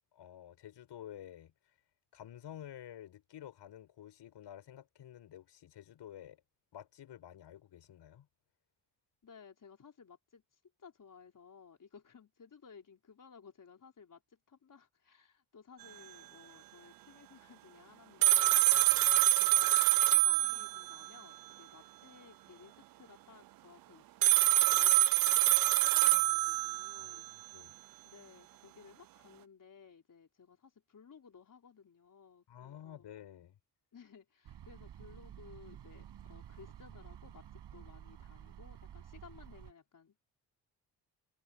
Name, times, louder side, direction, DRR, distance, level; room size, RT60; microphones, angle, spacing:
voice 1, 0.1-1.5 2.1-6.4 6.7-8.3 18.7-19.2 27.0-27.7 32.5-33.6, left 11 dB, 75° left, 7.2 m, -51 dB
voice 2, 9.2-18.7 19.0-27.3 27.6-33.1 33.9-40.2, left 6 dB, 45° left, 4.5 m, -58 dB
sound 1, 18.2-21.1 24.2-27.2, right 16 dB, 55° right, 0.5 m, -26 dB
sound 2, 34.4-39.7, right 10 dB, 70° right, 6.1 m, -51 dB
cardioid pair, 65°, 42 cm